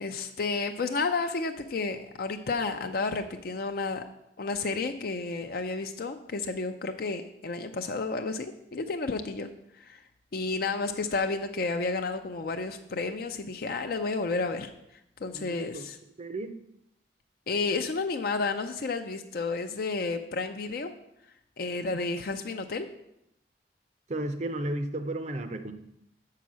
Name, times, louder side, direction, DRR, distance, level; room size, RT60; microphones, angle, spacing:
voice 1, 0.0-4.0 4.4-9.5 9.7-10.0 10.3-14.7 15.2-16.0 17.5-20.9 21.6-22.9, left 3 dB, 55° left, 6 dB, 0.5 m, -31 dB
voice 2, 15.3-15.9 16.2-16.6 24.1-25.7, right 1 dB, 40° right, 9 dB, 0.6 m, -33 dB
7.1 x 5.7 x 6.2 m, 0.82 s
head